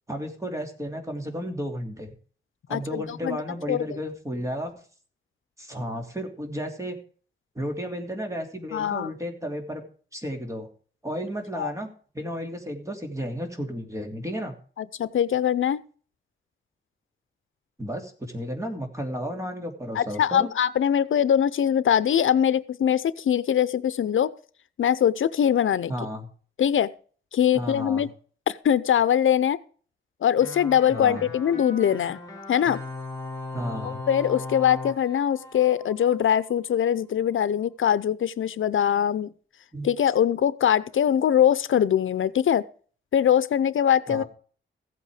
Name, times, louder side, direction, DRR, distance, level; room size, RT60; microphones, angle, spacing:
voice 1, 0.1-2.1 2.7-4.7 5.6-7.0 7.5-9.8 10.1-10.7 11.0-11.9 12.1-14.5 17.8-20.5 25.9-26.3 27.5-28.1 30.9-31.3 33.5-34.0 39.7-39.9 44.1-44.2, equal, 15° right, 4 dB, 2.9 m, -33 dB
voice 2, 2.7-3.4 3.7-4.0 8.7-9.1 11.6-11.7 14.8-15.8 19.9-24.3 24.8-25.9 26.6-26.9 27.3-28.1 28.5-29.6 30.2-32.2 32.5-32.8 33.8-39.3 39.8-42.6 43.1-44.2, left 9 dB, 80° left, 16 dB, 0.6 m, -22 dB
sound 1, 30.4-36.5, left 2 dB, 15° left, 4.4 m, -38 dB
15.5 x 8.5 x 5.0 m, 0.43 s
wide cardioid pair, 125°, 20 cm